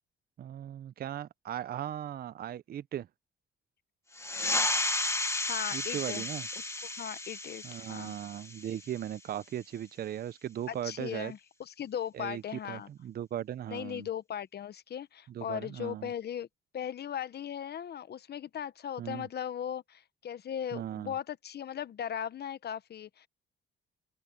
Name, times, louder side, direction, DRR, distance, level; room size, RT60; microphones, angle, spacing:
voice 1, 0.4-3.1 5.7-6.5 7.6-11.3 12.1-12.4 12.7-14.1 15.3-16.1 19.0-19.3 20.7-21.1, right 11 dB, 50° right, 0.5 m, -38 dB
sound 1, 4.1-9.3, left 2 dB, 15° left, 1.5 m, -33 dB
voice 2, 5.5-6.2 6.6-8.2 10.7-12.9 13.7-16.5 16.7-23.3, left 9 dB, 55° left, 1.1 m, -38 dB
open air
cardioid pair, 90°, 20 cm